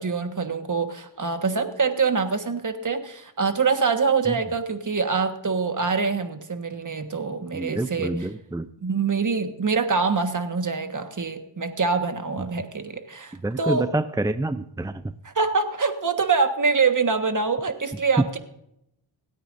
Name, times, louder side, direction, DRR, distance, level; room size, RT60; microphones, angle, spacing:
voice 1, 0.0-8.1 8.8-13.9 15.2-18.4, right 4 dB, 40° right, 7 dB, 1.5 m, -25 dB
voice 2, 7.5-8.7 13.3-15.1 18.2-18.3, right 2 dB, 10° right, 11 dB, 0.4 m, -27 dB
27.0 x 9.1 x 2.6 m, 0.80 s
cardioid pair, 75°, 48 cm